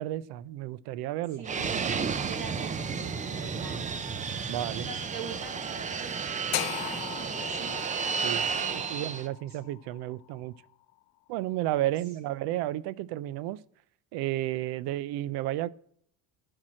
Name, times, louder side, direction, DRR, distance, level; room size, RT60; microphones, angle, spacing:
voice 1, 0.0-1.5 4.5-4.9 8.2-8.4 8.7-10.5 11.3-13.6 14.1-15.7, right 14 dB, 75° right, 0.6 m, -32 dB
voice 2, 1.3-1.7 2.3-3.9 4.8-7.8 8.1-8.9 9.5-9.6, right 4 dB, 45° right, 3.4 m, -44 dB
Fixed-wing aircraft airplane, 1.4-9.3, right 6 dB, 20° right, 0.4 m, -32 dB
sound 1, 6.5-10.6, left 18 dB, 75° left, 0.6 m, -38 dB
11.5 x 4.8 x 7.4 m
cardioid pair, 140°, 39 cm